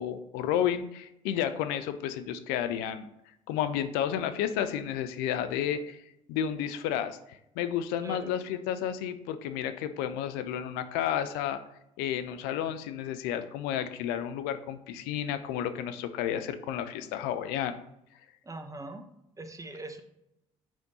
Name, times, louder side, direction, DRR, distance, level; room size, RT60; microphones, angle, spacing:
voice 1, 0.0-3.1 3.5-6.0 6.3-11.6 12.0-17.7, left 10 dB, 70° left, 10 dB, 0.6 m, -31 dB
voice 2, 8.0-8.4 18.4-19.1 19.4-20.0, right 2 dB, 20° right, 7 dB, 1.1 m, -41 dB
6.2 x 5.1 x 4.3 m, 0.83 s
hypercardioid pair, 55°, 17 cm